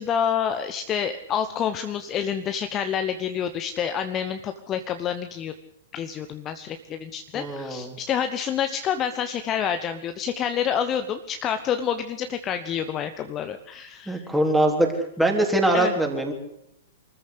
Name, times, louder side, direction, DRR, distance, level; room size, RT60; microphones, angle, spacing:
voice 1, 0.0-5.5 5.9-14.3 15.7-15.9, left 8 dB, 25° left, 9 dB, 1.1 m, -28 dB
voice 2, 7.3-8.0 14.1-14.9 15.2-16.3, right 1 dB, 5° right, 2 dB, 3.9 m, -22 dB
24.5 x 14.0 x 8.3 m, 0.80 s
figure-of-eight pair, 110°, 0 cm